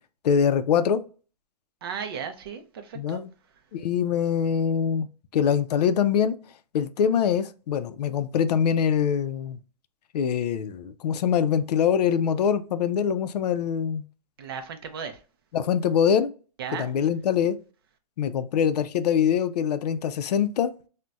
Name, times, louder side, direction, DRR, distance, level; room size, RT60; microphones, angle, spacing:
voice 1, 0.2-1.0 3.0-3.3 3.7-5.1 5.3-6.4 6.7-9.6 10.1-14.1 15.5-16.3 16.7-17.6 18.2-20.7, left 8 dB, 75° left, 0.4 m, -23 dB
voice 2, 1.8-3.2 14.4-15.2 16.6-16.9, right 7 dB, 35° right, 0.4 m, -35 dB
3.9 x 2.1 x 2.3 m
hypercardioid pair, 175°, 21 cm